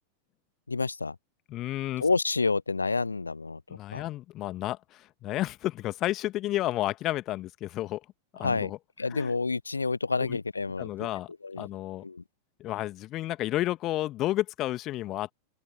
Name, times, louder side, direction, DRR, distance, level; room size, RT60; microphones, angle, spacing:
voice 1, 0.7-1.2 2.0-3.6 3.9-4.0 8.4-8.7 9.0-11.1 11.4-11.6 12.0-12.2, left 4 dB, 80° left, 0.5 m, -28 dB
voice 2, 1.5-2.0 3.7-8.0 8.4-8.8 9.1-9.3 10.3-10.4 10.8-11.3 11.5-12.0 12.6-15.3, left 15 dB, 35° left, 1.5 m, -31 dB
open air
figure-of-eight pair, 90°, 0 cm